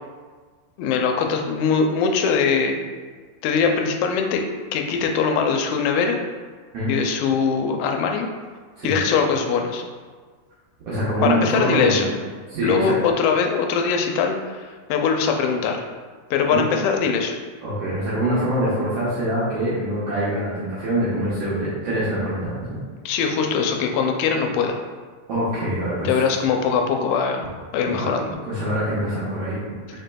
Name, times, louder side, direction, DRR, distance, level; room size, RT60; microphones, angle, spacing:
voice 1, 0.8-2.8 3.4-4.4 4.7-6.2 6.9-8.3 8.8-9.8 11.2-12.1 12.6-15.8 16.3-17.3 23.1-24.8 26.0-27.5 27.7-28.4, left 6 dB, 85° left, 3 dB, 2.3 m, -21 dB
voice 2, 10.9-12.1 12.5-12.9 16.5-16.6 17.6-22.8 25.3-26.2 28.0-28.1 28.5-29.6, right 1 dB, 75° right, -9 dB, 1.4 m, -24 dB
5.0 x 4.3 x 2.2 m, 1.5 s
omnidirectional pair, 4.0 m